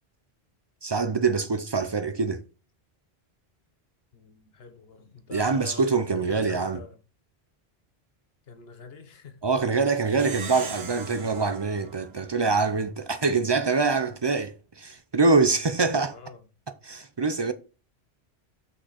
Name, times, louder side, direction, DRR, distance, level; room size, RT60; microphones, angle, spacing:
voice 1, 0.8-2.4 5.3-6.8 9.4-16.2 16.8-17.5, right 4 dB, 40° right, 0.4 m, -24 dB
voice 2, 4.1-7.0 8.5-9.4 16.0-16.4, left 5 dB, 70° left, 1.3 m, -46 dB
Plucked string instrument, 10.1-12.9, right 4 dB, 75° right, 1.4 m, -40 dB
6.1 x 5.5 x 4.1 m
omnidirectional pair, 1.1 m